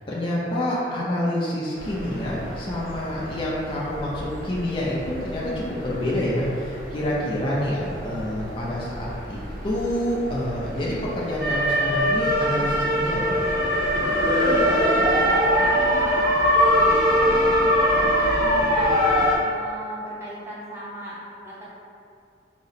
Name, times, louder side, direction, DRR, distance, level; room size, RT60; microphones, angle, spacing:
voice 1, 0.1-9.4 9.6-13.5, left 1 dB, 30° left, -6 dB, 0.5 m, -27 dB
sound 1, 1.8-19.3, equal, 55° right, 0.9 m, -23 dB
voice 2, 14.4-16.3 16.8-19.0 19.5-21.2 21.4-21.6, equal, 15° right, -8 dB, 0.8 m, -36 dB
3.8 x 2.0 x 4.1 m, 2.3 s
head